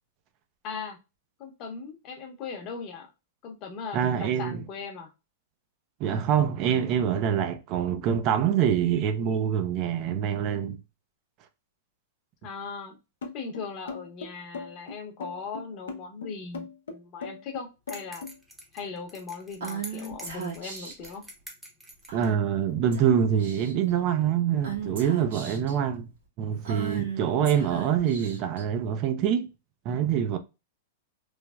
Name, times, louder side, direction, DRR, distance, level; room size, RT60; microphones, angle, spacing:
voice 1, 0.6-1.0 1.4-3.1 3.4-5.1 12.4-13.0 13.3-18.2 18.7-21.3, left 5 dB, 40° left, 0.8 m, -39 dB
voice 2, 3.9-4.6 6.0-10.8 22.1-26.1 26.4-29.5 29.9-30.4, right 8 dB, 40° right, 0.3 m, -25 dB
sound 1, 13.2-18.4, left 4 dB, 90° left, 0.6 m, -38 dB
sound 2, 17.9-22.3, equal, 5° right, 0.7 m, -46 dB
Female speech woman speaking / Whispering, 19.6-21.1 22.1-22.5 22.9-23.1 23.4-23.9 24.6-25.7 26.6-28.6, right 6 dB, 80° right, 1.4 m, -37 dB
3.1 x 2.0 x 2.3 m
hypercardioid pair, 140°, 0 cm